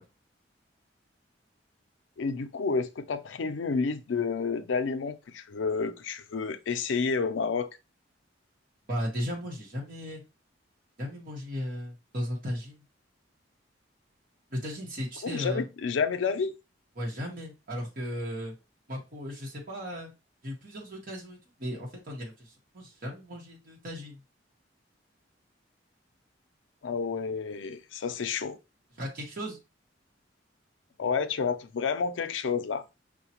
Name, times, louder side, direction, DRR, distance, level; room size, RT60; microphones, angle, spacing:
voice 1, 2.2-7.7 15.2-16.5 26.8-28.6 31.0-32.8, left 5 dB, 85° left, 0.5 m, -30 dB
voice 2, 8.9-10.2 11.0-12.8 14.5-15.7 16.9-18.5 18.9-20.1 20.4-24.2 29.0-29.6, equal, 50° right, 1.2 m, -36 dB
5.5 x 2.2 x 2.9 m
head